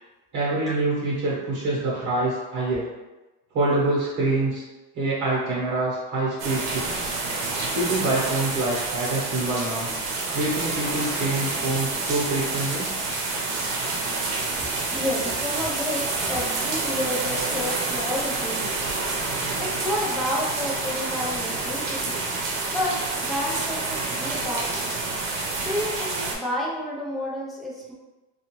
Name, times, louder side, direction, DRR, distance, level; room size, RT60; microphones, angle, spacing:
voice 1, 0.3-2.9 3.5-4.6 4.9-7.1 7.7-9.9 10.3-12.9, right 2 dB, 45° right, -6 dB, 0.9 m, -26 dB
sound 1, 6.4-26.4, right 3 dB, 85° right, 0.8 m, -28 dB
voice 2, 14.6-18.8 19.4-22.2 22.7-24.9 25.6-27.9, left 1 dB, ahead, -5 dB, 0.3 m, -30 dB
2.4 x 2.4 x 2.9 m, 1.1 s
cardioid pair, 135°, 39 cm